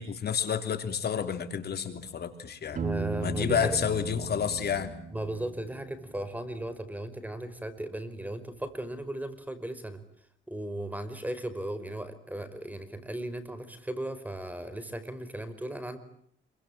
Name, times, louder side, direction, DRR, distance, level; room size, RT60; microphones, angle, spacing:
voice 1, 0.0-2.8 3.2-5.0, left 7 dB, 55° left, 8 dB, 3.3 m, -30 dB
voice 2, 2.7-3.8 5.1-10.0 10.5-16.0, right 1 dB, 10° right, 12 dB, 5.1 m, -36 dB
Piano, 2.8-6.5, right 5 dB, 45° right, 3.4 m, -38 dB
27.5 x 24.5 x 8.7 m, 0.68 s
cardioid pair, 90°, 20 cm